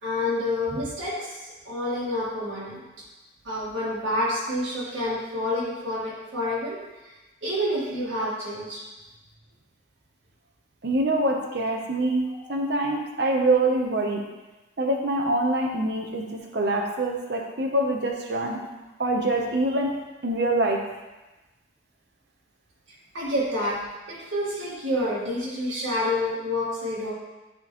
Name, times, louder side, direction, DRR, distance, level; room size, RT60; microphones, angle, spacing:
voice 1, 0.0-2.8 3.4-7.1 7.4-8.8 12.3-12.6 23.1-23.8 24.1-27.1, left 1 dB, 80° right, -8 dB, 1.8 m, -28 dB
voice 2, 10.8-14.2 14.8-18.6 19.0-19.9 20.2-20.8, right 2 dB, 55° right, 1 dB, 0.8 m, -25 dB
10.5 x 3.7 x 3.0 m, 1.1 s
head